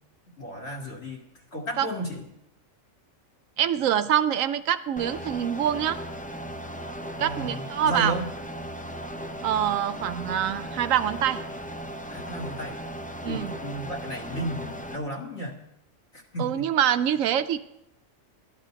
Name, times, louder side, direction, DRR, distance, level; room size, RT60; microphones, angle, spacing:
voice 1, 0.4-1.2 1.5-2.2 7.2-8.3 12.1-12.8 13.3-15.6 16.1-16.7, equal, 60° left, 0 dB, 2.5 m, -33 dB
voice 2, 3.6-6.0 7.2-8.1 9.4-11.4 13.2-13.5 16.4-17.6, right 10 dB, 90° right, 11 dB, 1.1 m, -25 dB
sound 1, 5.0-15.0, equal, 10° left, 0.4 m, -37 dB
14.5 x 12.0 x 5.2 m, 0.83 s
omnidirectional pair, 1.3 m